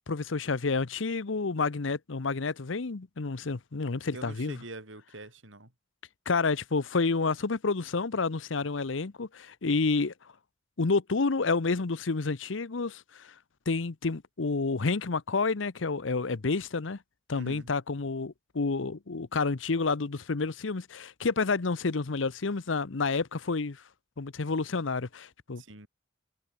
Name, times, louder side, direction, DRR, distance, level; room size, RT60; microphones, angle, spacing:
voice 1, 0.1-4.6 6.3-10.1 10.8-13.3 13.7-17.0 17.3-23.8 24.2-25.6, left 4 dB, 80° left, 0.8 m, -29 dB
voice 2, 4.1-5.7 17.3-17.7 25.6-25.9, right 2 dB, 85° right, 5.4 m, -44 dB
head